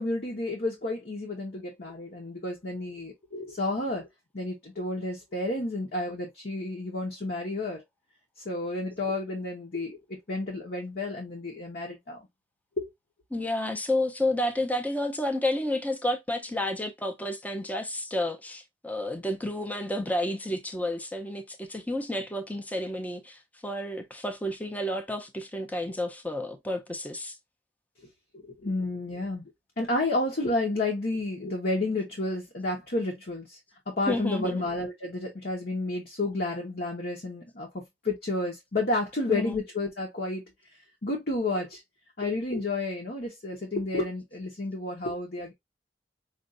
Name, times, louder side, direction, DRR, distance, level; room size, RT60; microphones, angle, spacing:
voice 1, 0.0-4.1 4.3-7.8 8.4-12.2 12.8-12.9 28.3-29.4 29.8-33.6 33.9-40.4 41.0-41.8 42.2-45.5, left 2 dB, 60° left, 1.1 m, -31 dB
voice 2, 13.3-27.4 34.1-34.6 39.3-39.6, left 1 dB, 10° left, 0.6 m, -31 dB
5.2 x 2.6 x 2.5 m
head